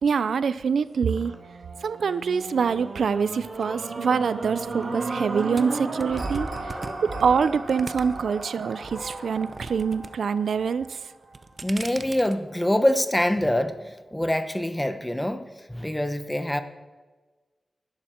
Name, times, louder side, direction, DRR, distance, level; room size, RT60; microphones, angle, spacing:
voice 1, 0.0-1.3 1.8-6.5 7.2-11.0, right 6 dB, 90° right, 15 dB, 0.5 m, -25 dB
Purr / Meow, 0.8-1.6 1.9-2.5 3.2-3.3 3.6-4.2 4.7-5.6 5.9-6.6 7.0-7.6 8.0-8.1 8.6-9.3, right 1 dB, 15° right, 1.8 m, -42 dB
sound 1, 1.0-11.3 11.9-12.0, right 3 dB, 60° right, 2.5 m, -35 dB
sound 2, 5.6-8.4 8.8-10.1 10.4-10.8 11.2-12.3, right 3 dB, 40° right, 0.8 m, -39 dB
voice 2, 11.6-16.6, left 1 dB, 10° left, 9 dB, 1.0 m, -25 dB
19.0 x 11.5 x 4.4 m, 1.3 s
wide cardioid pair, 115°, 0 cm